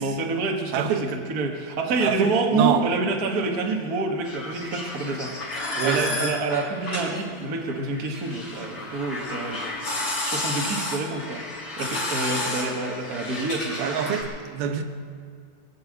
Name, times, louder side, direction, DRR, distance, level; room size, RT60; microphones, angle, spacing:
voice 1, 0.0-5.3 5.8-9.6 10.2-11.4 11.8-14.0, right 3 dB, 40° right, 1 dB, 1.3 m, -27 dB
voice 2, 0.7-1.1 2.0-2.8 5.7-6.2 13.8-14.8, right 8 dB, 85° right, 6 dB, 2.9 m, -26 dB
sound 1, 4.2-14.2, left 2 dB, 35° left, 3.6 m, -31 dB
21.0 x 8.1 x 8.0 m, 2.2 s
omnidirectional pair, 4.2 m